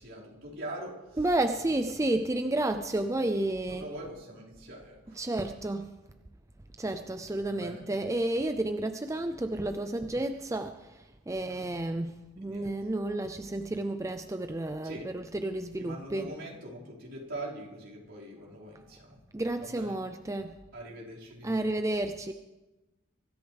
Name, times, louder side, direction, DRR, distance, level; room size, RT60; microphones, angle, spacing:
voice 1, 0.0-1.3 1.6-2.1 3.6-5.3 7.4-7.9 11.4-11.8 12.4-12.7 14.8-15.1 15.8-19.2 19.6-20.0 20.7-21.7, right 1 dB, 65° right, -6 dB, 5.1 m, -43 dB
voice 2, 1.1-3.9 5.1-5.9 6.8-10.9 11.3-16.3 19.3-20.6 21.4-22.3, right 1 dB, 15° right, 8 dB, 0.5 m, -31 dB
24.0 x 13.5 x 3.4 m, 1.1 s
head